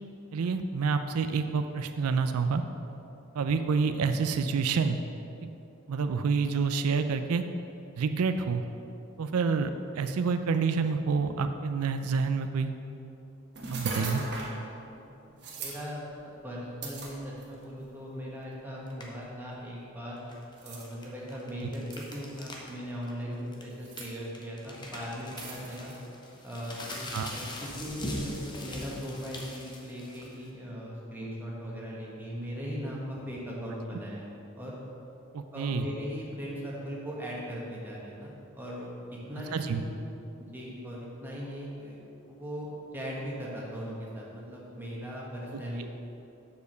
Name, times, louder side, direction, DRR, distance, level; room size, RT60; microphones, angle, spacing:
voice 1, 0.3-2.6 3.3-5.0 5.4-5.5 5.9-7.4 8.0-8.6 9.2-12.7 13.7-14.2 21.6-21.7 27.1-27.4 35.3-35.8 39.5-39.8 45.8-45.9, right 5 dB, 85° right, 8 dB, 0.4 m, -28 dB
sound 1, 13.6-14.6 15.4-15.8 16.8-17.7 18.4-18.5 20.6-20.9 21.9-22.4 23.7-24.1 25.4-26.0, right 3 dB, 50° right, 1.3 m, -38 dB
voice 2, 14.9-16.0 16.4-20.2 20.6-25.9 26.4-34.8 35.5-38.9 39.3-39.9 40.4-42.0 42.3-45.9, equal, 10° right, -5 dB, 1.4 m, -39 dB
sound 2, 18.9-19.2 20.2-22.7 23.0-23.1 23.5-30.5, left 1 dB, 20° left, 0.9 m, -41 dB
6.9 x 5.1 x 6.6 m, 2.9 s
head